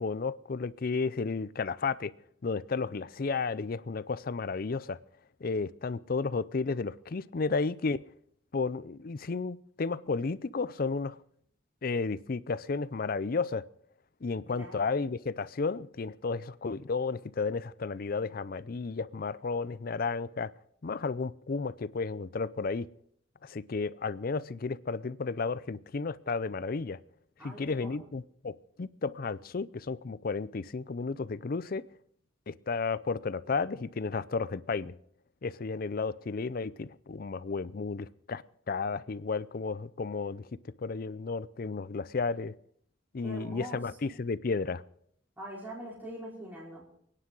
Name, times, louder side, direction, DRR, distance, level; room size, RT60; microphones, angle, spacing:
voice 1, 0.0-2.1 2.4-5.0 5.4-8.0 8.5-11.2 11.8-13.6 14.2-20.5 20.8-22.9 23.4-27.0 27.4-31.8 32.5-35.0 35.4-38.4 38.7-40.5 40.8-42.5 43.1-44.8, left 4 dB, 50° left, 0.5 m, -33 dB
voice 2, 14.5-14.8 27.4-28.1 43.2-43.8 45.4-46.8, equal, 10° right, 4.8 m, -43 dB
29.0 x 9.9 x 3.9 m
head